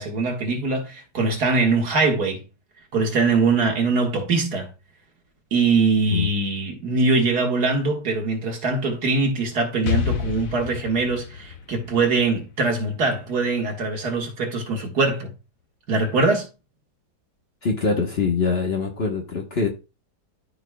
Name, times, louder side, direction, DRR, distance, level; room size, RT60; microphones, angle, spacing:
voice 1, 0.0-2.4 2.9-4.7 5.5-15.3 15.9-16.5, right 3 dB, 65° right, 2.1 m, -22 dB
Explosion, 9.9-13.6, left 8 dB, 60° left, 1.1 m, -30 dB
voice 2, 17.6-19.7, left 4 dB, 40° left, 1.2 m, -23 dB
13.0 x 4.8 x 2.3 m
omnidirectional pair, 1.8 m